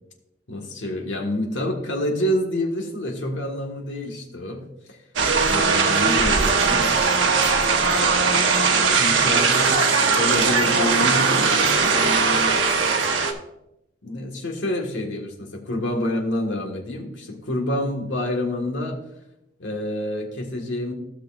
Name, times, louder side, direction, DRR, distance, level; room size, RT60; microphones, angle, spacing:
voice 1, 0.5-4.6 4.9-5.0 5.4-6.9 9.0-11.3 11.8-12.7 14.0-19.0 19.6-20.9, left 1 dB, 85° left, 2 dB, 1.6 m, -27 dB
sound 1, 5.2-13.3, right 4 dB, 85° right, 1.1 m, -19 dB
15.5 x 6.4 x 2.5 m, 0.86 s
head